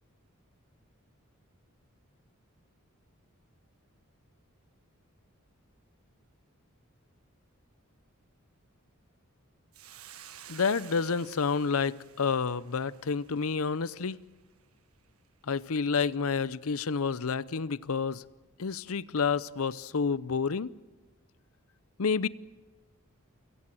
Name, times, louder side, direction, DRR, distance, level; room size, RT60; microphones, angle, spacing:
Hiss, 9.7-14.2, right 10 dB, 85° right, 1.6 m, -52 dB
voice 1, 10.5-14.2 15.5-18.2 18.6-20.7 22.0-22.3, left 5 dB, 80° left, 18 dB, 0.7 m, -29 dB
28.0 x 17.5 x 7.7 m, 1.2 s
head